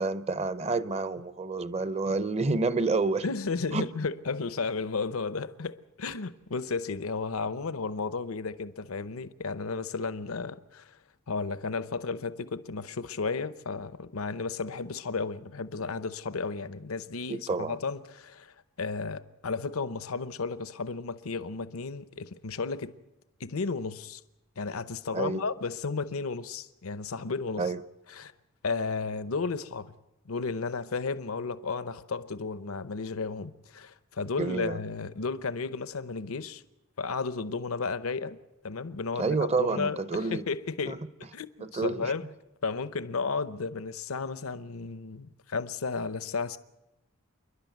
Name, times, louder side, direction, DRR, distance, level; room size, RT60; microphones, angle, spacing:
voice 1, 0.0-3.2 3.7-3.9 17.3-17.8 25.1-25.4 27.6-27.8 34.4-34.8 39.2-40.4 40.9-41.0 41.6-42.1, right 3 dB, 30° right, 0.7 m, -29 dB
voice 2, 3.2-11.0 11.3-23.0 23.4-24.2 24.6-27.7 28.1-28.3 28.6-29.9 30.3-36.6 37.0-41.0 41.3-42.2 42.6-46.6, left 4 dB, 80° left, 0.8 m, -33 dB
28.5 x 11.0 x 9.3 m
head